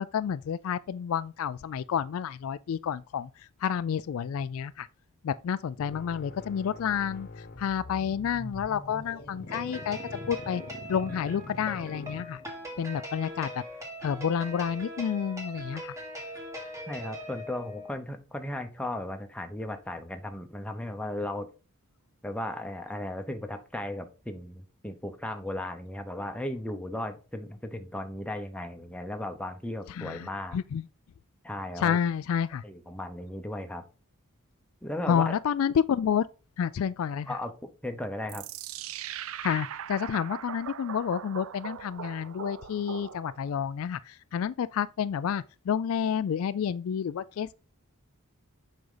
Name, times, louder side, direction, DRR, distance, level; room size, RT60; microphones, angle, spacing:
voice 1, 0.0-4.9 5.2-10.0 10.3-10.6 10.9-12.4 12.8-13.6 14.0-16.0 29.9-30.8 31.8-32.6 35.1-36.3 36.6-37.4 39.4-47.5, left 8 dB, 65° left, 0.3 m, -30 dB
sound 1, 5.8-12.7, left 2 dB, 45° left, 1.1 m, -43 dB
sound 2, 9.5-17.9, equal, 15° right, 1.8 m, -41 dB
voice 2, 16.9-21.5 22.2-30.6 31.4-32.0 32.6-33.8 34.8-35.4 37.3-38.5, left 1 dB, 5° left, 0.9 m, -36 dB
sound 3, 38.3-43.6, right 9 dB, 65° right, 0.4 m, -40 dB
7.8 x 5.2 x 3.9 m
head